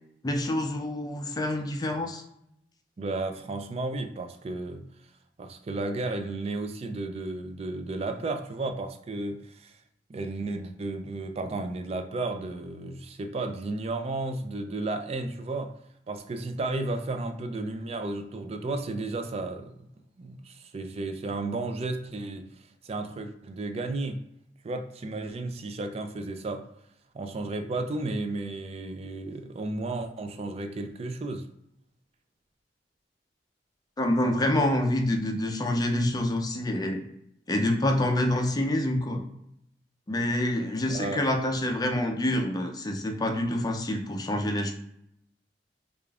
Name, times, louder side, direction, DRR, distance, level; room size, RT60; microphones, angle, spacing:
voice 1, 0.2-2.2 34.0-37.0 37.5-39.2 40.1-44.7, left 1 dB, 20° left, 3 dB, 0.5 m, -27 dB
voice 2, 3.0-4.8 5.4-9.8 10.1-15.7 16.1-19.9 20.2-22.5 22.8-24.2 24.6-26.7 27.1-31.5 40.9-41.2, right 2 dB, 35° right, 7 dB, 0.4 m, -33 dB
5.0 x 2.4 x 2.3 m, 0.77 s
head